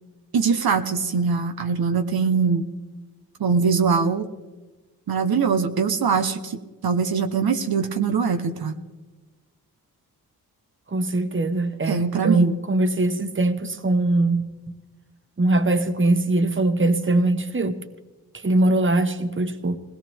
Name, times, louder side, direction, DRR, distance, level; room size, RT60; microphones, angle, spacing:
voice 1, 0.3-2.7 3.4-4.3 5.1-8.8 11.9-12.6, right 5 dB, 70° right, 1.1 m, -22 dB
voice 2, 10.9-14.4 15.4-17.8 18.4-19.8, right 2 dB, 30° right, 1.4 m, -21 dB
20.5 x 17.5 x 3.6 m
cardioid pair, 60°, 38 cm